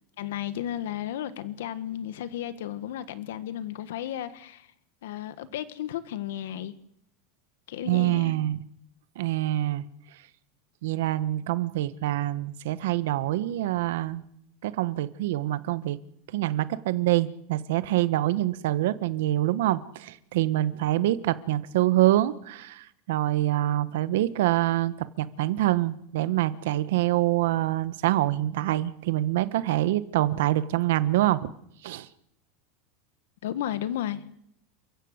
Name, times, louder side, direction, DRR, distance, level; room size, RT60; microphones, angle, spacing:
voice 1, 0.2-4.7 5.0-6.7 7.7-8.3 33.4-34.3, left 11 dB, 90° left, 1.6 m, -33 dB
voice 2, 7.9-8.6 9.1-9.8 10.8-14.2 14.6-16.0 16.3-31.5 31.8-32.1, right 15 dB, 75° right, 1.3 m, -25 dB
29.0 x 15.0 x 8.1 m
supercardioid pair, 175°, 0 cm